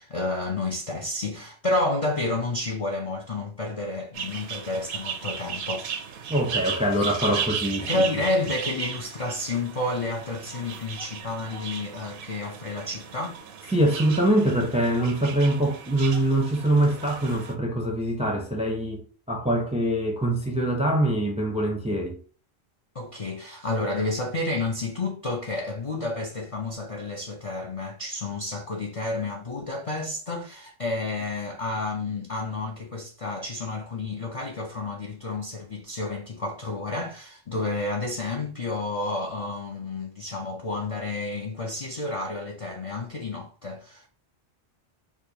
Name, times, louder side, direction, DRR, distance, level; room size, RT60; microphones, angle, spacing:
voice 1, 0.0-6.0 7.8-13.4 22.9-44.1, left 2 dB, 45° left, 0.4 m, -30 dB
sound 1, 4.1-17.5, right 7 dB, 65° right, 0.7 m, -36 dB
voice 2, 6.3-8.0 13.7-19.0 19.3-22.2, right 1 dB, 10° right, 0.5 m, -24 dB
4.8 x 2.2 x 2.7 m
omnidirectional pair, 1.1 m